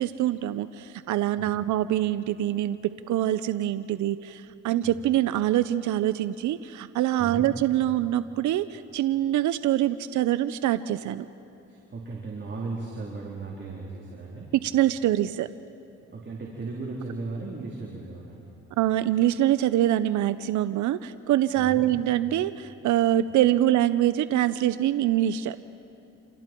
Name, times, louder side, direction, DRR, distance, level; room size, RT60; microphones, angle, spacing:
voice 1, 0.0-11.2 14.6-15.5 18.8-25.6, right 13 dB, 75° right, 13 dB, 0.6 m, -24 dB
voice 2, 11.7-14.5 16.1-18.5 21.6-21.9, right 3 dB, 40° right, -3 dB, 3.7 m, -36 dB
29.0 x 27.0 x 4.5 m, 2.9 s
cardioid pair, 90°, 30 cm